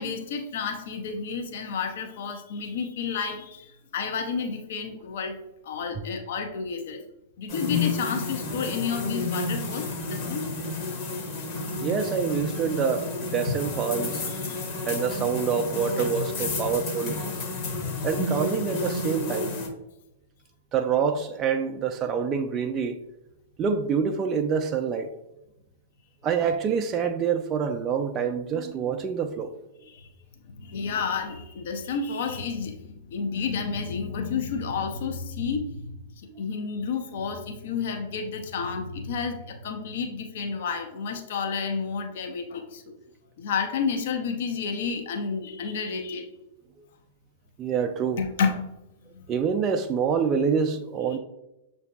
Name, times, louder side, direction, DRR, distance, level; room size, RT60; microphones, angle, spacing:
voice 1, 0.0-5.4 5.6-7.0 7.4-10.5 14.5-14.6 16.4-16.6 29.9-30.1 30.6-35.9 36.4-42.8 43.4-46.3 48.2-48.7 49.1-49.2 51.1-51.2, left 5 dB, 60° left, 0.5 m, -30 dB
sound 1, 7.5-19.7, left 3 dB, 40° left, 1.0 m, -31 dB
voice 2, 11.8-14.2 14.9-17.4 18.0-19.5 20.7-23.0 23.6-25.1 26.2-29.5 47.6-48.2 49.3-51.2, right 6 dB, 30° right, 0.3 m, -26 dB
6.5 x 2.6 x 2.3 m
hypercardioid pair, 105°, 0 cm